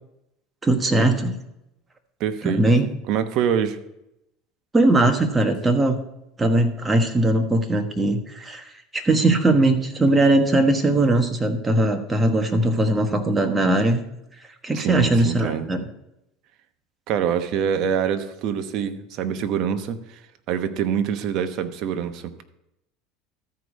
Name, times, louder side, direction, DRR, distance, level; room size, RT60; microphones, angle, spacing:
voice 1, 0.6-1.3 2.4-2.9 4.7-6.0 6.4-14.0 14.6-15.9, right 2 dB, 15° right, 5 dB, 1.2 m, -20 dB
voice 2, 2.2-2.6 3.1-3.8 14.7-15.7 17.1-20.2 20.5-22.4, right 8 dB, 55° right, 8 dB, 0.9 m, -25 dB
13.5 x 4.8 x 5.2 m, 0.84 s
supercardioid pair, 115°, 0 cm